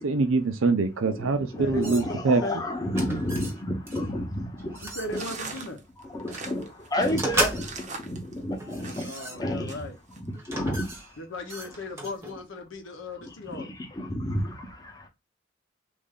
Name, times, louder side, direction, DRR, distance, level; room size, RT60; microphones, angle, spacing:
voice 1, 0.0-2.4, right 3 dB, 80° right, 0.6 m, -24 dB
voice 2, 1.0-4.8 5.1-5.2 6.0-9.8 10.2-10.9 13.5-15.1, left 1 dB, 20° left, 0.8 m, -31 dB
voice 3, 1.6-2.0 2.3-2.6 4.8-5.8 9.0-10.0 11.2-13.7, left 2 dB, 70° left, 0.9 m, -36 dB
sound 1, 1.8-2.4 2.9-3.6 3.9-4.1 4.5-5.7 6.3-6.5 7.1-8.0 8.6-9.7 10.3-12.4, right 1 dB, 15° right, 0.9 m, -34 dB
sound 2, 5.1-9.3 9.7-10.2, right 4 dB, 35° right, 0.6 m, -41 dB
3.2 x 2.6 x 3.7 m
head